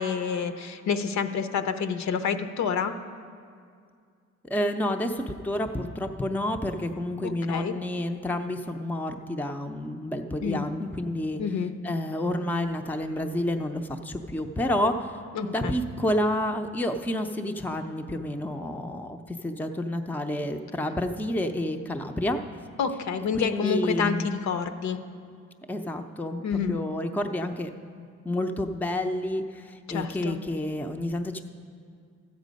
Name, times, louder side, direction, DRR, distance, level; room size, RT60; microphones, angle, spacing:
voice 1, 0.0-2.9 7.2-7.7 10.4-10.6 11.4-11.7 15.4-15.7 22.8-25.0 26.4-26.8 29.9-30.3, left 6 dB, 65° left, 9 dB, 0.7 m, -28 dB
voice 2, 4.4-11.4 11.8-15.1 15.4-22.4 23.3-24.3 25.7-27.7 28.0-31.4, left 1 dB, 5° left, 5 dB, 0.5 m, -29 dB
13.0 x 8.3 x 5.2 m, 2.2 s
cardioid pair, 90°, 30 cm